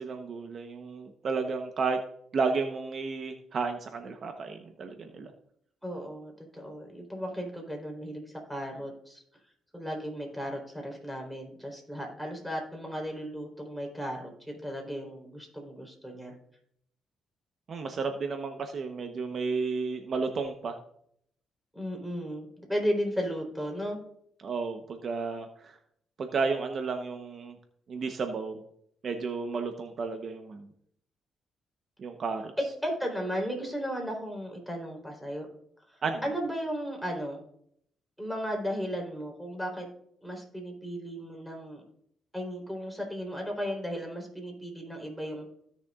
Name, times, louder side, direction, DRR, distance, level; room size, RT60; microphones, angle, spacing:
voice 1, 0.0-2.0 2.3-5.3 17.7-20.8 24.4-25.8 26.2-27.5 27.9-28.6 29.0-30.7 32.0-32.5 36.0-36.2, right 4 dB, 50° right, 6 dB, 1.0 m, -32 dB
voice 2, 5.8-9.2 9.7-16.3 21.7-24.0 32.6-35.5 35.9-37.4 38.2-39.9 40.2-41.8 42.3-45.5, equal, ahead, 0 dB, 3.9 m, -35 dB
16.5 x 6.7 x 2.5 m, 0.69 s
cardioid pair, 90°, 0 cm